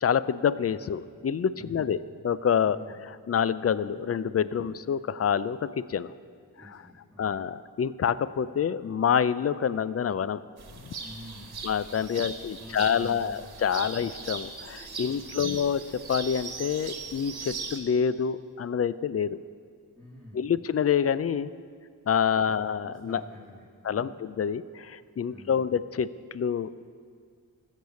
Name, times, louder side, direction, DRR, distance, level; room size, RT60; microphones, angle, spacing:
voice 1, 0.0-2.0 2.2-2.8 3.3-6.1 7.2-10.4 10.8-10.9 11.6-19.4 20.3-21.5 22.1-23.2 23.8-26.8, left 7 dB, 40° left, 16 dB, 0.5 m, -27 dB
voice 2, 1.5-1.9 2.6-3.0 4.5-4.6 6.5-7.5 11.0-11.6 12.6-13.4 15.0-15.5 19.9-20.4 22.4-23.6 23.9-24.1 25.2-25.7, left 1 dB, ahead, -10 dB, 3.1 m, -48 dB
sound 1, 10.6-17.8, right 5 dB, 85° right, 1.3 m, -39 dB
14.5 x 6.7 x 7.0 m, 2.1 s
cardioid pair, 55°, 37 cm